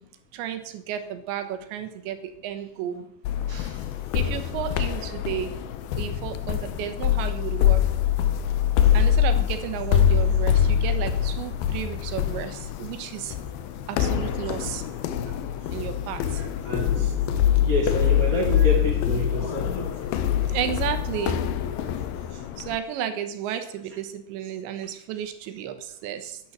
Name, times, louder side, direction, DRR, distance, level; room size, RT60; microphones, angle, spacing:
voice 1, 0.3-3.0 4.1-5.5 5.9-7.8 8.9-13.3 13.9-14.8 15.7-16.5 17.0-17.1 18.6-18.7 20.5-21.4 22.6-26.4, right 10 dB, 75° right, 9 dB, 3.3 m, -32 dB
sound 1, 3.2-22.8, left 10 dB, 75° left, 2.3 m, -24 dB
voice 2, 3.5-3.9 16.6-17.1 17.6-20.2, left 1 dB, 40° left, -1 dB, 1.1 m, -29 dB
11.0 x 10.5 x 7.3 m, 0.73 s
omnidirectional pair, 5.3 m